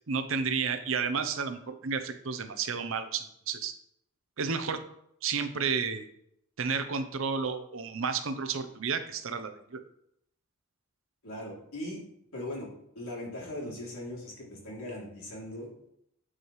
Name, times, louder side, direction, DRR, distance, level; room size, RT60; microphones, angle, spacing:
voice 1, 0.1-3.7 4.4-4.8 5.2-6.1 6.6-9.8, right 5 dB, 70° right, 9 dB, 0.7 m, -31 dB
voice 2, 11.2-12.0 12.3-12.7 12.9-15.7, left 1 dB, 85° left, -5 dB, 3.0 m, -39 dB
9.8 x 4.9 x 3.2 m, 0.74 s
head